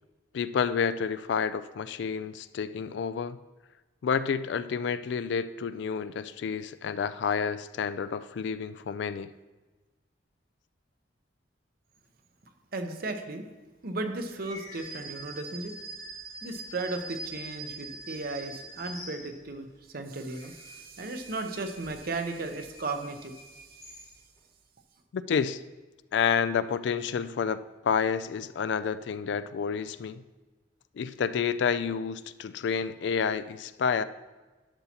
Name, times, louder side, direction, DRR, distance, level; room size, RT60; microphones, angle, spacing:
voice 1, 0.3-3.4 4.0-9.3 25.1-25.6 26.1-30.2 31.0-34.0, left 6 dB, 65° left, 14 dB, 0.3 m, -29 dB
voice 2, 12.7-13.5 13.8-15.7 16.4-19.7 19.9-23.8, right 2 dB, 50° right, 6 dB, 0.8 m, -35 dB
sound 1, 14.4-19.7 20.1-24.4, right 2 dB, 20° left, 1.0 m, -44 dB
11.5 x 7.1 x 2.9 m, 1.2 s
head